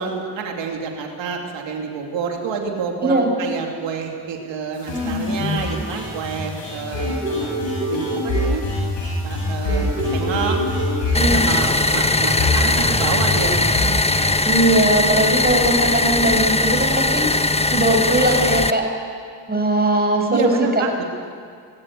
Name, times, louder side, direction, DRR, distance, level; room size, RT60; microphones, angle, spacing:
voice 1, 0.0-7.5 7.9-8.6 9.2-10.6 11.3-13.7 20.3-21.0, right 5 dB, 85° right, 2 dB, 2.9 m, -28 dB
sound 1, 4.8-14.3, left 1 dB, 80° left, 7.9 m, -24 dB
sound 2, 11.1-18.7, left 2 dB, 15° left, 1.0 m, -19 dB
voice 2, 11.1-11.4 14.4-18.8 19.5-20.8, right 1 dB, 20° right, 2 dB, 6.8 m, -19 dB
21.0 x 16.0 x 9.9 m, 2.2 s
supercardioid pair, 45°, 44 cm